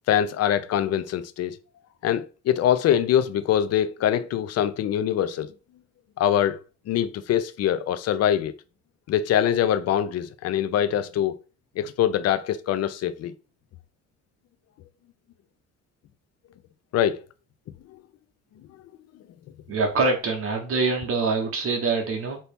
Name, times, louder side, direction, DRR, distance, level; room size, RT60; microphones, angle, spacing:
voice 1, 0.1-1.6 2.0-5.5 6.2-6.6 6.9-8.5 9.1-11.4 11.8-13.3 16.9-17.2, left 10 dB, 55° left, 0.4 m, -23 dB
voice 2, 19.7-22.4, right 3 dB, 45° right, 0.7 m, -24 dB
2.8 x 2.7 x 3.4 m
cardioid pair, 85°, 31 cm